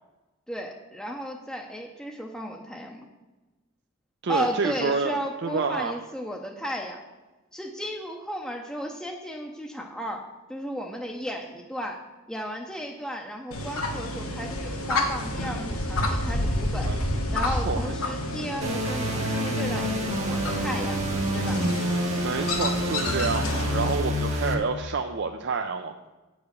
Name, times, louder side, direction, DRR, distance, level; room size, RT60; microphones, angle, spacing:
voice 1, 0.5-3.1 4.3-7.0 7.5-12.0 12.3-16.9 17.3-21.0 21.3-21.6, equal, 5° left, 0 dB, 0.6 m, -34 dB
voice 2, 4.2-5.9 16.8-17.0 17.4-17.9 22.2-25.9, right 4 dB, 50° right, 5 dB, 0.4 m, -29 dB
sound 1, 13.5-24.0, left 1 dB, 75° left, 1.5 m, -30 dB
sound 2, 18.6-24.5, equal, 30° right, 1.1 m, -28 dB
8.4 x 4.9 x 6.6 m, 1.1 s
head